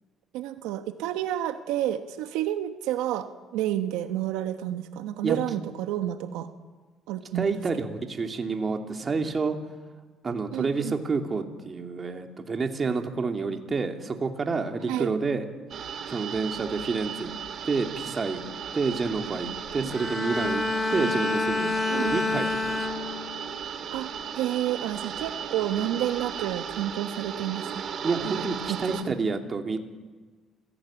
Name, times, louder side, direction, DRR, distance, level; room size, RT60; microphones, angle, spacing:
voice 1, 0.3-6.5 7.1-7.5 10.5-11.0 14.9-15.1 19.8-19.9 21.9-22.1 23.9-27.9 28.2-28.4 28.7-29.0, right 12 dB, 90° right, 9 dB, 1.2 m, -30 dB
voice 2, 7.3-9.6 10.2-15.5 16.1-17.3 17.6-18.4 18.7-20.6 20.9-22.9 28.0-29.8, right 4 dB, 35° right, 5 dB, 2.8 m, -29 dB
sound 1, 15.7-29.0, right 7 dB, 55° right, 2.3 m, -36 dB
Bowed string instrument, 19.9-23.5 23.9-24.3, left 3 dB, 10° left, 2.7 m, -28 dB
27.0 x 17.0 x 8.9 m, 1.4 s
cardioid pair, 90°, 0 cm